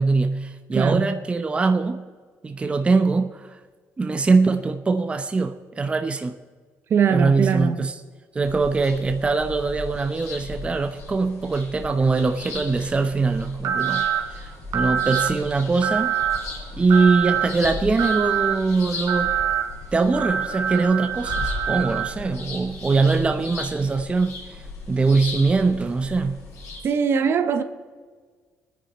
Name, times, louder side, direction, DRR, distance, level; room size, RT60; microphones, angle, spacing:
voice 1, 0.0-2.0 2.4-3.6 4.0-6.3 7.1-8.0 8.3-14.0 14.3-16.2 16.8-19.3 19.9-24.3 24.9-26.4, right 4 dB, 25° right, 0.8 m, -22 dB
voice 2, 0.7-1.1 6.9-7.8 26.8-27.6, right 6 dB, 55° right, 1.0 m, -21 dB
sound 1, 8.4-26.8, left 3 dB, 80° left, 4.8 m, -37 dB
sound 2, 13.6-14.2 14.7-15.3 15.8-16.4 16.9-17.5 18.0-18.6 19.1-19.6 20.1-22.1, right 9 dB, 80° right, 1.9 m, -24 dB
22.5 x 10.0 x 4.2 m
cardioid pair, 110°, 5 cm